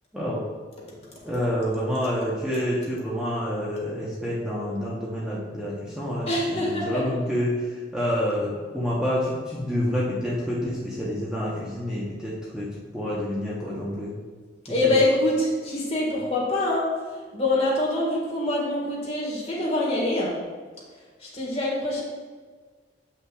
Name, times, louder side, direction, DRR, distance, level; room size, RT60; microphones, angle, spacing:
voice 1, 0.1-0.5 1.2-14.2 14.8-14.9, equal, 5° right, -7 dB, 0.9 m, -28 dB
voice 2, 6.3-7.0 14.7-16.9 17.3-20.3 21.2-22.0, left 1 dB, 35° left, -5 dB, 1.6 m, -24 dB
7.9 x 5.5 x 2.3 m, 1.5 s
head